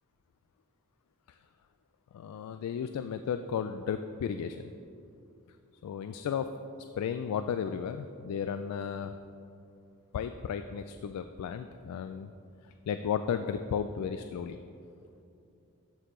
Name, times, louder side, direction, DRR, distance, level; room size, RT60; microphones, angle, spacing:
voice 1, 2.1-4.7 5.8-6.5 7.0-9.1 10.1-12.3 12.9-14.6, left 7 dB, 90° left, 9 dB, 0.3 m, -34 dB
13.0 x 4.6 x 3.7 m, 2.7 s
head